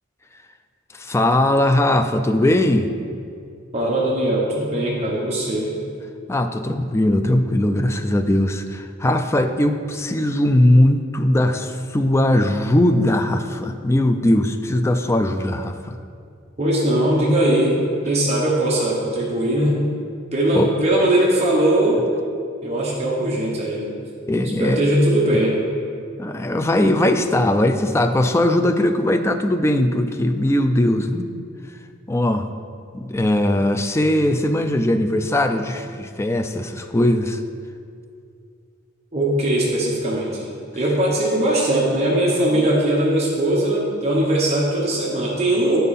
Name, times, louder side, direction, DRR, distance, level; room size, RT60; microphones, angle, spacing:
voice 1, 0.9-2.9 6.3-16.0 20.5-20.7 24.3-24.8 26.2-31.3 32.1-32.5 32.9-37.4, left 1 dB, 15° left, 6 dB, 0.3 m, -19 dB
voice 2, 3.7-5.7 16.6-17.8 18.0-19.8 20.3-22.0 22.6-23.9 24.4-25.5 39.1-40.5 40.7-45.8, right 1 dB, 30° right, -5 dB, 1.1 m, -20 dB
8.9 x 5.4 x 4.2 m, 2.3 s
head